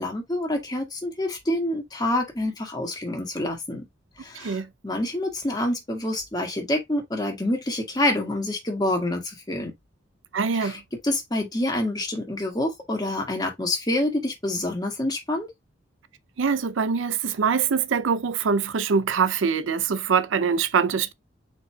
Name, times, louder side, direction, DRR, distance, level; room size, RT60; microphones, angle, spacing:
voice 1, 0.0-3.9 4.2-9.7 10.6-15.5, left 1 dB, 20° left, 1.6 m, -27 dB
voice 2, 4.4-4.7 10.3-10.8 16.4-21.1, right 6 dB, 80° right, 0.5 m, -23 dB
5.1 x 4.6 x 2.2 m
head